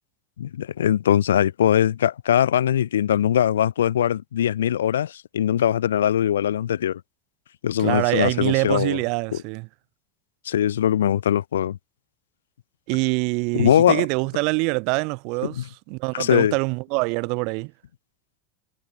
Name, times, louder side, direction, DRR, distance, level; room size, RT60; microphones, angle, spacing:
voice 1, 0.4-7.0 7.6-9.0 10.5-11.8 13.5-14.0 15.6-15.7 16.1-16.5, left 10 dB, 70° left, 0.3 m, -21 dB
voice 2, 7.8-9.7 12.9-17.7, right 32 dB, 55° right, 1.2 m, -25 dB
figure-of-eight pair, 75°, 0 cm